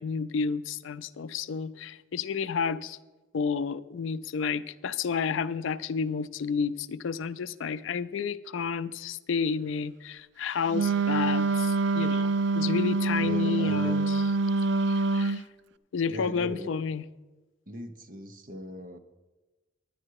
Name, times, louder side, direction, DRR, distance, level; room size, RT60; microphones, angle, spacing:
voice 1, 0.0-3.0 3.3-14.2 14.9-15.4 15.9-17.1, left 6 dB, 70° left, 14 dB, 0.4 m, -31 dB
Wind instrument woodwind instrument, 10.7-15.4, right 3 dB, 60° right, 0.3 m, -26 dB
voice 2, 13.2-14.1 16.1-16.7 17.7-19.0, equal, 40° right, 7 dB, 0.9 m, -39 dB
10.5 x 9.7 x 4.7 m, 1.2 s
head